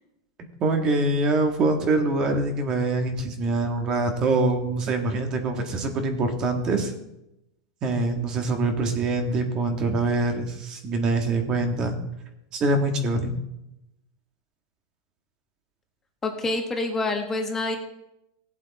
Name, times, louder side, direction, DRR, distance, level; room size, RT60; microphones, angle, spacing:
voice 1, 0.6-6.9 7.8-12.0 12.5-13.3, right 2 dB, 30° right, 4 dB, 1.9 m, -24 dB
voice 2, 16.2-17.8, left 2 dB, 15° left, 3 dB, 1.6 m, -27 dB
17.5 x 8.2 x 4.2 m, 0.88 s
supercardioid pair, 140°, 3 cm